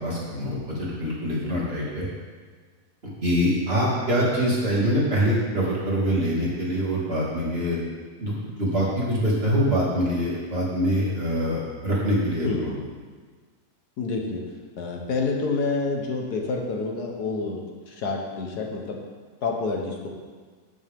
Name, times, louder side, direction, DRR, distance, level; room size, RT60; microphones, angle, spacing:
voice 1, 0.0-2.1 3.2-7.8 8.2-12.5, equal, 40° right, -6 dB, 2.6 m, -24 dB
voice 2, 12.4-12.8 14.0-14.4 14.8-19.0 19.4-20.1, left 3 dB, 85° left, 1 dB, 1.8 m, -28 dB
14.5 x 6.3 x 3.6 m, 1.5 s
omnidirectional pair, 1.7 m